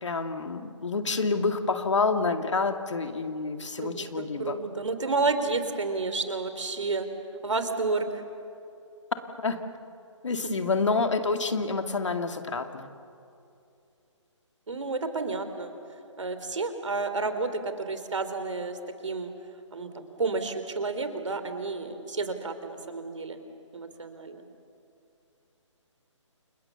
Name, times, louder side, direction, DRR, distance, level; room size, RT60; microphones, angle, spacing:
voice 1, 0.0-4.6 9.4-9.6 10.2-12.9, left 4 dB, 65° left, 7 dB, 2.3 m, -28 dB
voice 2, 3.8-7.1 7.4-8.1 14.7-15.7 16.2-18.8 19.0-19.3 19.7-23.4 23.7-24.4, right 3 dB, 70° right, 9 dB, 3.3 m, -30 dB
29.5 x 27.0 x 7.1 m, 2.6 s
figure-of-eight pair, 145°, 16 cm